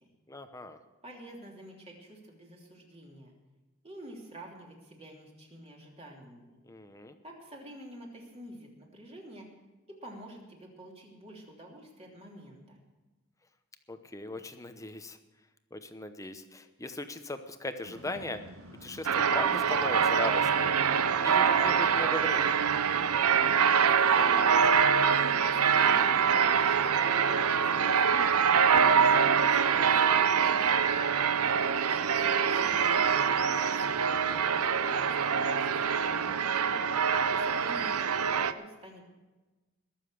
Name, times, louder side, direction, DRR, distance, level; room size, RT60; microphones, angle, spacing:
voice 1, 0.3-0.8 6.7-7.1 13.9-15.2 15.7-18.4 18.8-20.7 21.2-22.6 28.9-29.3 37.1-37.5, left 2 dB, 15° left, 9 dB, 0.8 m, -39 dB
voice 2, 1.0-3.3 3.8-6.6 7.2-9.5 9.9-12.8 23.8-31.1 31.7-33.2 33.6-36.8 37.3-39.1, right 1 dB, 30° right, -1 dB, 3.1 m, -48 dB
sound 1, 17.8-23.8, equal, 75° right, 1.9 m, -49 dB
sound 2, 19.0-38.5, right 7 dB, 90° right, 0.7 m, -25 dB
21.5 x 7.3 x 6.4 m, 1.2 s
head